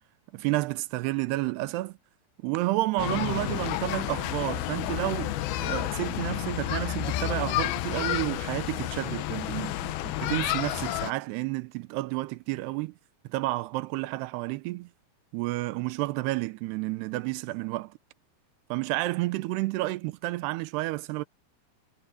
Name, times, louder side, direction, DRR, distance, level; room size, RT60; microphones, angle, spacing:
voice 1, 0.3-2.0 2.4-12.9 13.3-14.9 15.3-17.9 18.7-21.2, right 19 dB, 85° right, 2.8 m, -30 dB
sound 1, 3.0-11.1, left 14 dB, 75° left, 2.5 m, -30 dB
omnidirectional pair, 4.9 m